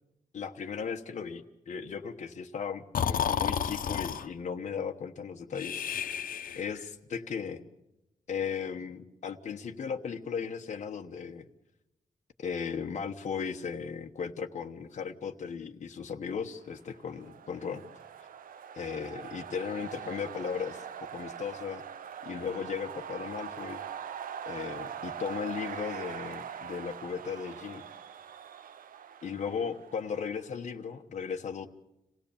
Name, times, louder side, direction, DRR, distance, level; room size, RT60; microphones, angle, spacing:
voice 1, 0.3-5.8 6.6-7.6 8.3-11.4 12.4-17.8 18.8-20.8 21.1-21.8 22.2-23.8 24.4-27.8 29.2-31.7, left 6 dB, 55° left, 4 dB, 1.1 m, -36 dB
Breathing, 2.9-4.3 5.6-6.8, left 8 dB, 90° left, 0.9 m, -31 dB
sound 1, 16.8-30.6, right 8 dB, 85° right, 0.7 m, -42 dB
27.0 x 17.0 x 7.1 m, 0.90 s
wide cardioid pair, 175°, 14 cm